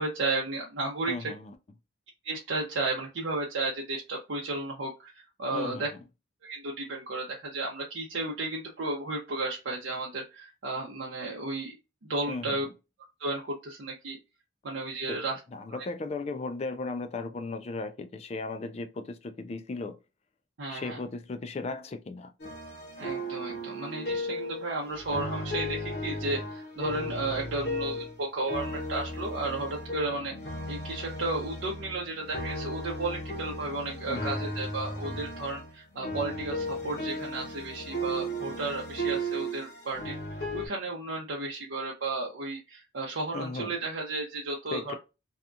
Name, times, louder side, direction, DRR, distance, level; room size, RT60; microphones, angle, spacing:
voice 1, 0.0-1.1 2.2-5.9 6.4-11.7 12.1-12.6 13.2-14.2 14.6-15.4 15.7-15.8 20.6-21.0 23.0-30.3 30.7-40.2 40.5-44.9, right 2 dB, 90° right, 0.6 m, -33 dB
voice 2, 1.1-1.5 5.5-5.8 12.3-12.6 15.1-15.2 15.5-20.0 20.7-22.3 34.1-34.5 43.3-43.7 44.7-44.9, left 3 dB, 35° left, 0.3 m, -36 dB
sound 1, 22.4-28.2 28.5-40.7, equal, 55° left, 0.8 m, -35 dB
2.8 x 2.3 x 2.4 m
head